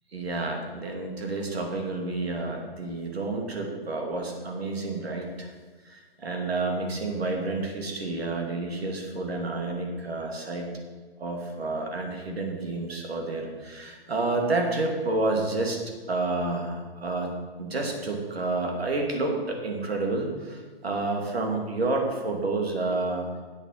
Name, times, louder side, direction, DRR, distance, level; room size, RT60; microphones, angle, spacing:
voice 1, 0.1-5.5 5.8-10.6 11.2-15.8 16.1-23.3, right 2 dB, 85° right, 1 dB, 2.6 m, -29 dB
8.2 x 7.0 x 7.4 m, 1.4 s
hypercardioid pair, 145°, 30 cm